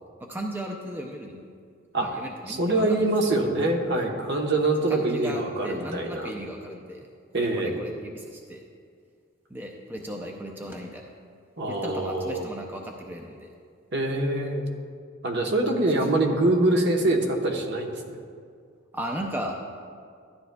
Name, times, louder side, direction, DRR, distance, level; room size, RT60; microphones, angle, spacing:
voice 1, 0.2-1.4 2.0-3.4 4.9-7.1 7.4-8.6 9.5-11.0 11.7-13.5 18.9-19.5, equal, 10° right, 1 dB, 0.5 m, -36 dB
voice 2, 2.5-6.3 7.3-7.8 11.6-12.5 13.9-14.6 15.2-18.2, right 2 dB, 55° right, 2 dB, 1.0 m, -24 dB
13.0 x 10.5 x 2.3 m, 2.2 s
head